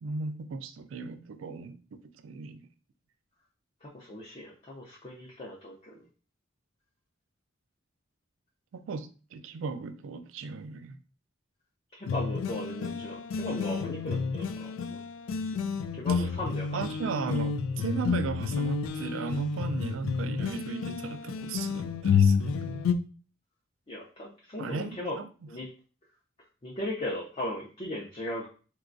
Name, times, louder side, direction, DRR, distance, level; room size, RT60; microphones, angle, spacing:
voice 1, 0.0-2.7 8.7-11.0 16.2-16.3 16.7-22.9 24.6-25.3, right 4 dB, 80° right, 0.4 m, -36 dB
voice 2, 3.8-6.1 11.9-15.0 15.9-16.8 23.9-25.2 25.5-25.7 26.6-28.5, left 1 dB, 30° left, 0.5 m, -37 dB
sound 1, 12.1-22.9, left 6 dB, 90° left, 0.3 m, -30 dB
3.9 x 2.3 x 2.5 m
head